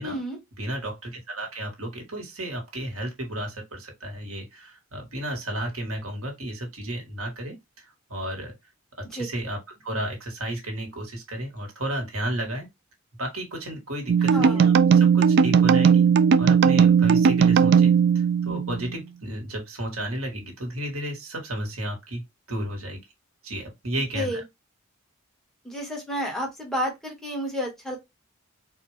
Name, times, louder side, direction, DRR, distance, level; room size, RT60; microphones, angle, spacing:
voice 1, 0.0-0.4 9.1-9.3 14.3-14.8 24.1-24.4 25.6-28.0, equal, ahead, 1.5 m, -31 dB
voice 2, 0.6-8.6 9.0-12.7 13.2-16.1 16.4-23.0 23.4-24.4, right 1 dB, 85° right, 1.7 m, -33 dB
sound 1, 14.1-18.9, right 6 dB, 55° right, 0.3 m, -18 dB
4.2 x 2.5 x 3.3 m
head